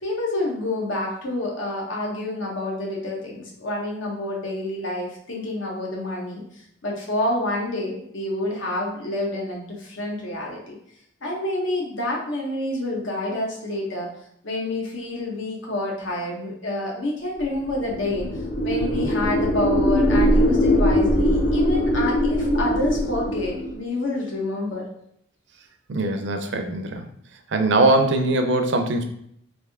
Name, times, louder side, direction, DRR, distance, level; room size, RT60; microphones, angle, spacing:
voice 1, 0.0-6.4 6.8-10.8 11.2-14.1 14.4-18.3 18.6-24.9, left 1 dB, 70° left, -2 dB, 1.0 m, -28 dB
sound 1, 17.7-23.8, equal, 30° left, 0.6 m, -21 dB
voice 2, 25.9-27.1 27.5-29.0, right 2 dB, 60° right, 5 dB, 0.5 m, -21 dB
3.4 x 2.7 x 3.4 m, 0.70 s
head